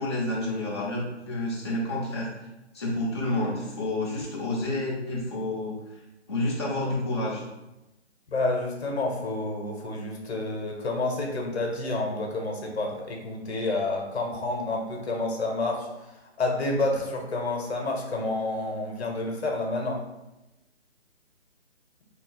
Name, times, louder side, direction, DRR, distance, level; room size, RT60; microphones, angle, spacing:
voice 1, 0.0-2.5 2.7-6.0 6.3-7.4, left 1 dB, 25° left, -5 dB, 0.6 m, -29 dB
voice 2, 8.3-20.0, left 2 dB, 65° left, 1 dB, 0.8 m, -29 dB
2.8 x 2.3 x 3.9 m, 0.97 s
hypercardioid pair, 155°, 35 cm